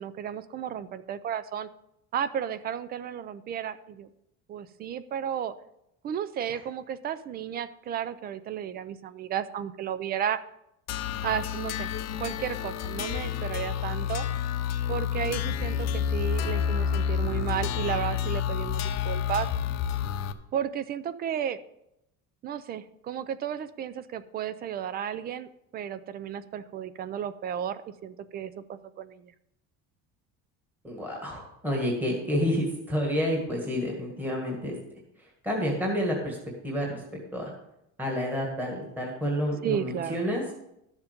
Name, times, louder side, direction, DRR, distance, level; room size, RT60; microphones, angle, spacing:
voice 1, 0.0-1.7 2.1-4.1 4.5-5.5 6.0-10.4 11.2-11.9 12.2-14.3 14.9-19.5 20.5-21.6 22.4-29.3 39.6-40.2, right 9 dB, 30° right, 15 dB, 0.4 m, -33 dB
sound 1, 10.9-20.3, left 8 dB, 50° left, 0.8 m, -29 dB
voice 2, 30.8-34.7 35.4-36.4 36.6-37.0 37.3-37.5 38.0-40.4, equal, 5° right, -1 dB, 1.7 m, -29 dB
12.5 x 7.2 x 5.2 m, 0.81 s
cardioid pair, 175°, 34 cm